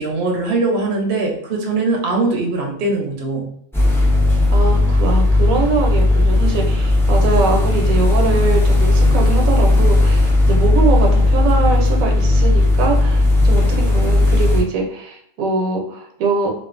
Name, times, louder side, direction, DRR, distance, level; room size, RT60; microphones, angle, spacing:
voice 1, 0.0-3.5 13.6-13.8, right 3 dB, 55° right, 0 dB, 0.7 m, -21 dB
sound 1, 3.7-14.6, left 2 dB, 5° left, 0.3 m, -15 dB
voice 2, 4.5-16.5, right 4 dB, 80° right, 2 dB, 1.0 m, -22 dB
2.4 x 2.4 x 2.4 m, 0.70 s
omnidirectional pair, 1.4 m